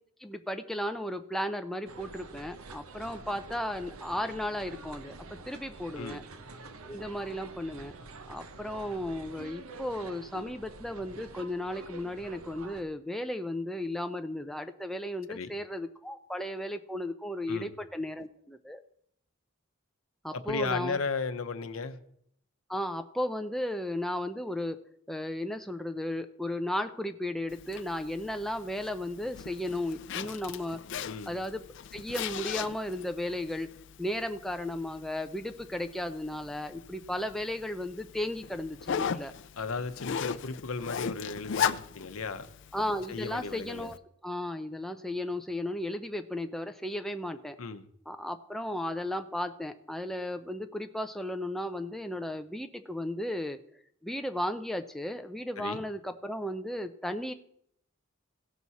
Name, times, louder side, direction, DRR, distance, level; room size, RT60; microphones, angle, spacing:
voice 1, 0.2-5.1 5.5-6.2 6.8-7.9 8.3-18.8 20.2-21.0 22.7-24.8 25.1-30.8 31.3-31.6 31.9-33.7 34.0-39.3 42.7-44.0 44.2-47.6 48.1-53.6 54.0-57.3, left 1 dB, ahead, 6 dB, 0.4 m, -35 dB
sound 1, 1.9-12.8, right 3 dB, 85° right, 0.8 m, -47 dB
voice 2, 20.3-22.0 31.0-31.3 39.6-42.5 43.1-43.9 47.6-47.8 55.6-55.8, left 4 dB, 85° left, 9 dB, 0.8 m, -35 dB
Zipper (clothing), 27.5-44.0, left 7 dB, 60° left, 0.4 m, -38 dB
16.5 x 6.1 x 4.1 m, 0.69 s
head